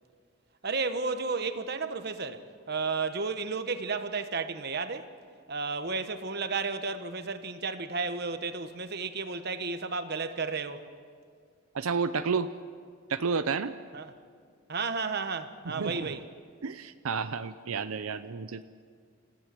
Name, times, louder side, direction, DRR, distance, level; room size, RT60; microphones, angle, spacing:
voice 1, 0.6-5.1 5.5-10.9 13.9-14.1 14.7-16.2, right 4 dB, 50° right, 1.1 m, -33 dB
voice 2, 11.7-12.5 13.1-13.7 15.8-16.1 16.6-18.6, right 5 dB, 85° right, 0.6 m, -30 dB
29.0 x 15.0 x 7.6 m
head